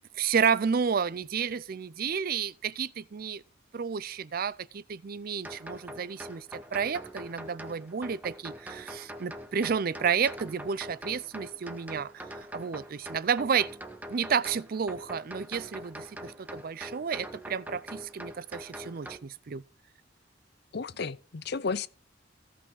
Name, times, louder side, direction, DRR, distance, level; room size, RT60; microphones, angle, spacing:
voice 1, 0.1-3.4 3.7-13.7 14.1-19.6, right 6 dB, 50° right, 0.4 m, -31 dB
sound 1, 5.4-19.2, equal, 10° right, 0.9 m, -43 dB
voice 2, 20.7-21.9, left 5 dB, 55° left, 0.6 m, -33 dB
16.5 x 5.7 x 4.7 m
head